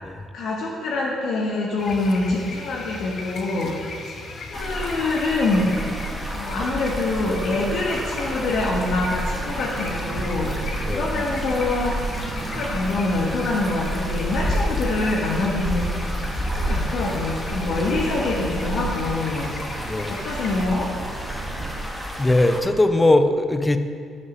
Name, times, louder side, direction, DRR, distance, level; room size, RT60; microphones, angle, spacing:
voice 1, 0.3-3.7 4.1-4.2 4.5-5.7 6.3-10.5 10.9-12.0 12.4-19.5 20.1-20.9, left 2 dB, 70° left, -2 dB, 1.1 m, -25 dB
sound 1, 1.8-20.7, left 3 dB, 50° left, 0.9 m, -38 dB
sound 2, 4.5-22.6, equal, 5° right, 1.2 m, -30 dB
sound 3, 7.1-21.8, right 4 dB, 40° right, 0.6 m, -37 dB
voice 2, 19.8-20.1 22.2-23.8, left 2 dB, 15° left, 9 dB, 0.5 m, -20 dB
8.1 x 5.4 x 6.0 m, 2.2 s
cardioid pair, 105°, 0 cm